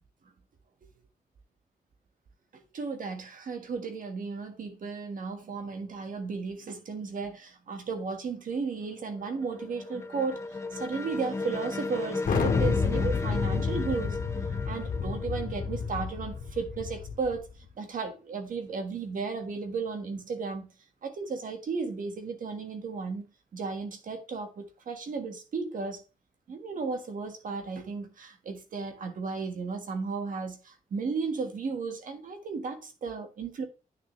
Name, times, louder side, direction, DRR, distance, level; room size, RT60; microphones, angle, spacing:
voice 1, 2.5-17.5 17.8-20.6 21.0-23.2 23.5-26.0 26.5-33.6, right 4 dB, 65° right, 1.6 m, -34 dB
sound 1, 8.8-16.6, left 3 dB, 20° left, 0.5 m, -36 dB
Thunder, 12.2-17.4, left 5 dB, 65° left, 1.8 m, -30 dB
9.3 x 6.5 x 3.2 m
wide cardioid pair, 150°, 15 cm